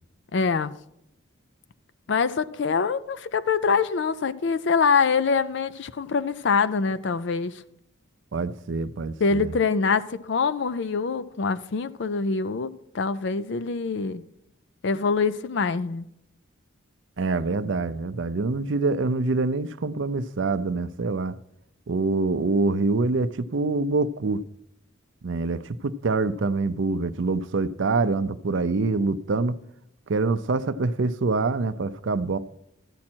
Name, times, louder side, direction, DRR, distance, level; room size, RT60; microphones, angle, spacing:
voice 1, 0.3-0.7 2.1-7.6 9.2-14.2 14.8-16.1, left 5 dB, 55° left, 0.4 m, -24 dB
voice 2, 8.3-9.5 17.2-21.4 21.9-24.4 25.2-29.6 30.1-32.4, right 3 dB, 60° right, 0.5 m, -25 dB
13.0 x 8.6 x 4.4 m
head